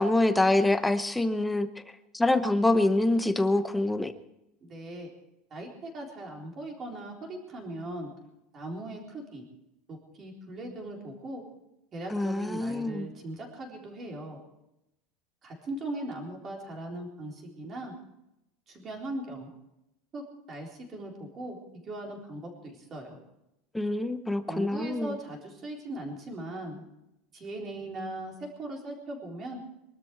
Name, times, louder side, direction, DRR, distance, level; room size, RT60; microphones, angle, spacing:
voice 1, 0.0-1.7 2.1-4.1 12.1-13.1 23.7-25.1, left 2 dB, 5° left, 9 dB, 0.8 m, -25 dB
voice 2, 4.6-5.1 5.5-8.1 8.5-9.5 9.9-11.4 11.9-14.4 15.4-17.9 18.7-19.5 20.1-20.2 20.5-21.6 21.8-23.2 24.5-26.8 27.3-29.6, right 1 dB, 25° right, 0 dB, 3.9 m, -39 dB
23.0 x 13.0 x 4.7 m, 0.87 s
supercardioid pair, 175°, 0 cm